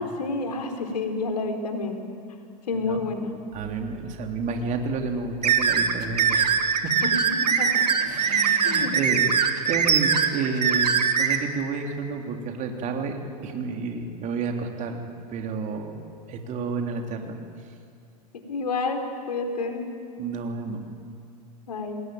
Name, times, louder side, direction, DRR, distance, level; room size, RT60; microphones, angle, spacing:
voice 1, 0.0-2.0 2.7-3.3 7.0-7.9 8.6-9.0 18.5-19.8 21.7-22.0, left 3 dB, 70° left, 5 dB, 3.9 m, -29 dB
voice 2, 2.7-3.0 3.5-6.9 8.0-9.2 9.6-13.2 13.4-15.0 15.3-16.0 16.3-17.4 20.2-20.8, right 4 dB, 35° right, 3 dB, 3.4 m, -30 dB
sound 1, 5.4-11.4, right 7 dB, 75° right, 2.0 m, -22 dB
28.5 x 20.0 x 9.3 m, 2.3 s
figure-of-eight pair, 90°, 21 cm